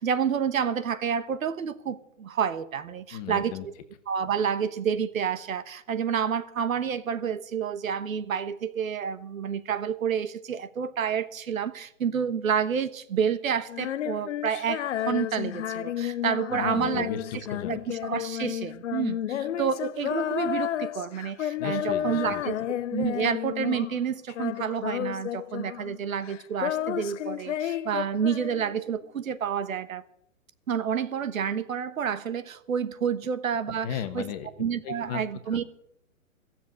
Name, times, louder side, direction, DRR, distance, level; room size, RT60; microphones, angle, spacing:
voice 1, 0.0-3.7 4.1-17.1 17.7-22.6 22.9-30.0 30.7-33.9 34.1-34.2 34.6-35.6, right 7 dB, 75° right, 1.2 m, -29 dB
voice 2, 3.1-3.7 16.5-17.8 21.6-22.5 33.7-34.5 34.8-35.2, left 9 dB, 30° left, 1.3 m, -35 dB
Female singing, 13.7-24.0 24.3-26.0 26.2-28.9, left 11 dB, 60° left, 0.6 m, -32 dB
15.5 x 7.4 x 9.5 m
hypercardioid pair, 145°, 41 cm